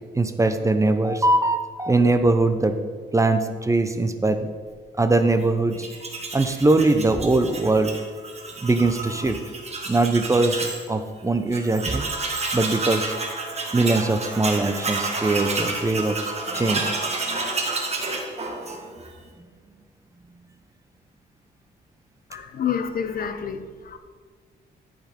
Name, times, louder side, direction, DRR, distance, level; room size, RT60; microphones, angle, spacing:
voice 1, 0.1-2.7 3.1-4.5 5.0-5.9 6.3-7.9 8.6-9.4 9.9-12.1 12.5-13.1 13.7-16.9, right 2 dB, 20° right, 9 dB, 0.8 m, -21 dB
Tools, 5.7-10.8 11.2-11.3 11.5-19.1, right 3 dB, 40° right, 1.7 m, -30 dB
voice 2, 22.3-24.0, left 7 dB, 60° left, 9 dB, 0.9 m, -28 dB
13.5 x 5.3 x 5.3 m, 1.5 s
cardioid pair, 85°, 17 cm